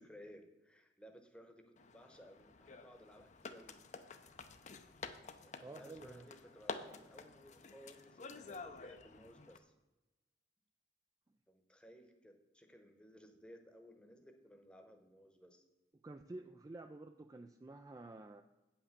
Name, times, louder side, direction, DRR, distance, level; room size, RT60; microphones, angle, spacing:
voice 1, 0.0-3.8 5.4-9.7 11.5-15.6, equal, 5° left, 5 dB, 0.9 m, -59 dB
sound 1, 1.8-9.6, left 4 dB, 40° left, 0.6 m, -50 dB
voice 2, 5.6-6.3 16.0-18.4, right 2 dB, 20° right, 7 dB, 0.3 m, -50 dB
8.5 x 5.8 x 6.7 m, 1.1 s
head